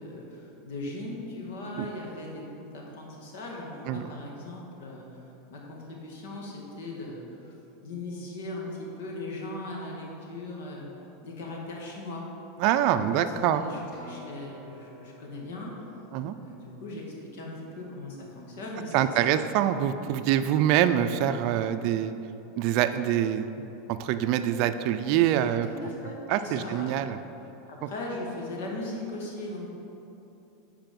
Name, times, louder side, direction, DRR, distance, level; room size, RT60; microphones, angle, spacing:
voice 1, 0.0-5.2 5.5-7.2 7.8-10.9 11.2-12.2 12.9-13.2 13.5-15.7 16.3-17.0 17.3-19.1 25.6-26.9 27.7-29.7, left 2 dB, 75° left, -2 dB, 1.9 m, -38 dB
voice 2, 12.6-13.6 16.1-16.4 18.9-22.1 22.6-25.7 26.3-27.2 27.8-27.9, right 11 dB, 55° right, 10 dB, 0.4 m, -25 dB
Acoustic guitar, 13.9-18.3 19.0-19.1, left 1 dB, 35° left, 1.9 m, -51 dB
9.0 x 4.8 x 5.3 m, 2.9 s
supercardioid pair, 130°, 0 cm